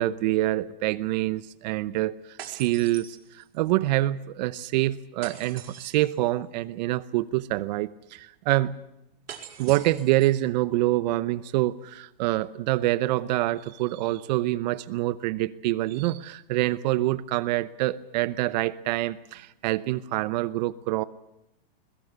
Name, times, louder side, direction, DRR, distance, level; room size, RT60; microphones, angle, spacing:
voice 1, 0.0-8.7 9.6-21.0, right 16 dB, 45° right, 17 dB, 0.8 m, -26 dB
sound 1, 2.4-3.7 5.2-6.2 9.3-10.5, right 9 dB, 80° right, 5.6 m, -43 dB
21.5 x 21.5 x 8.0 m, 0.84 s
supercardioid pair, 150°, 30 cm